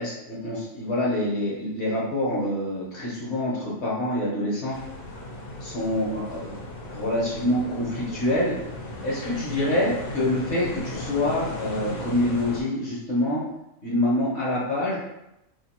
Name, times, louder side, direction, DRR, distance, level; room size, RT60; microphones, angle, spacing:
voice 1, 0.0-4.8 5.6-6.6 6.9-8.6 9.0-13.4 13.8-15.0, left 1 dB, 55° left, -5 dB, 1.3 m, -26 dB
sound 1, 4.7-12.6, left 1 dB, 90° left, 1.3 m, -36 dB
2.8 x 2.6 x 4.2 m, 0.89 s
omnidirectional pair, 1.4 m